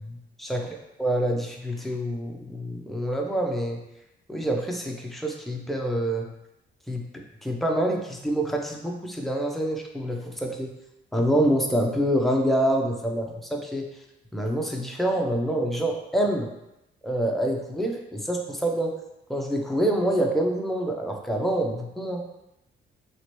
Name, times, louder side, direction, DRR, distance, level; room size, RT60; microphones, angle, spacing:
voice 1, 0.0-0.6 1.0-3.8 4.3-6.3 6.9-10.7 11.1-13.9 14.3-16.5 17.0-18.9 19.3-22.2, right 1 dB, ahead, 0 dB, 0.5 m, -26 dB
3.0 x 3.0 x 3.0 m, 0.89 s
cardioid pair, 90°, 20 cm